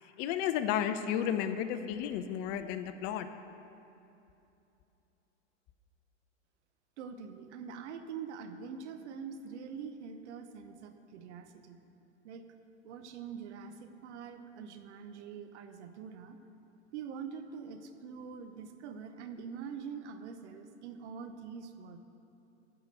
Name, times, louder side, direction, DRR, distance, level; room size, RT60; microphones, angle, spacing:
voice 1, 0.2-3.3, left 9 dB, 45° left, 10 dB, 0.6 m, -32 dB
voice 2, 7.0-11.8 12.2-12.5 12.8-16.4 16.9-22.0, right 6 dB, 65° right, 8 dB, 0.9 m, -44 dB
13.0 x 4.9 x 6.6 m, 2.8 s
hypercardioid pair, 95°, 36 cm